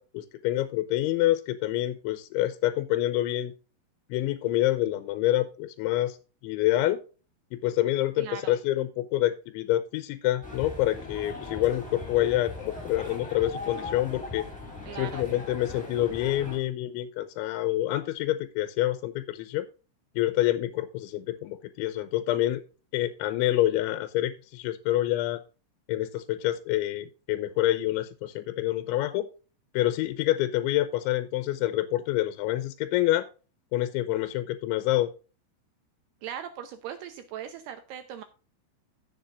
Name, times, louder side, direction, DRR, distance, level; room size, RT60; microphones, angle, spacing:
voice 1, 0.0-3.5 4.1-6.2 6.4-7.0 7.5-14.5 15.0-19.7 20.2-22.6 22.9-25.4 25.9-29.3 29.7-33.3 33.7-35.1, left 14 dB, 80° left, 12 dB, 3.0 m, -27 dB
voice 2, 8.2-8.5 14.9-15.2 36.2-38.2, right 9 dB, 80° right, 9 dB, 2.4 m, -39 dB
sound 1, 10.4-16.6, left 3 dB, ahead, 3.4 m, -39 dB
15.5 x 7.1 x 2.5 m, 0.34 s
omnidirectional pair, 5.6 m